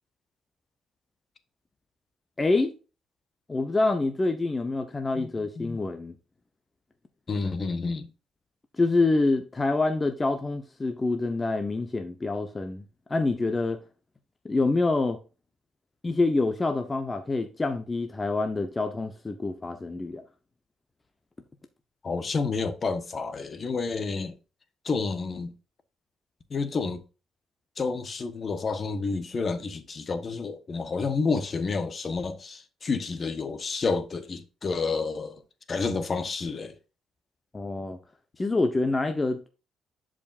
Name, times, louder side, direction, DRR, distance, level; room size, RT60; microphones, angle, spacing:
voice 1, 2.4-2.8 3.5-6.1 8.8-12.8 13.1-13.8 14.4-15.2 16.0-20.2 37.5-38.0 38.4-39.5, left 3 dB, 25° left, 0.9 m, -26 dB
voice 2, 7.3-8.1 22.0-24.3 24.8-25.5 26.5-27.0 27.8-35.4 35.7-36.7, left 4 dB, 40° left, 1.2 m, -29 dB
10.5 x 5.1 x 2.5 m
cardioid pair, 90°, 0 cm